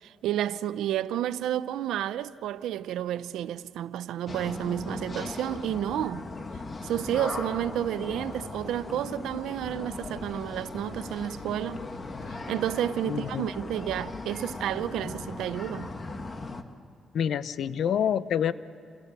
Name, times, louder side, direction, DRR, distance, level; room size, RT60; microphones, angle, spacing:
voice 1, 0.0-6.3 6.8-11.8 12.5-15.9, right 11 dB, 85° right, 0.7 m, -31 dB
sound 1, 4.3-16.6, left 3 dB, 35° left, 1.9 m, -38 dB
voice 2, 13.1-13.4 17.1-18.5, left 9 dB, 70° left, 0.8 m, -27 dB
29.0 x 28.5 x 6.8 m
cardioid pair, 80°, 0 cm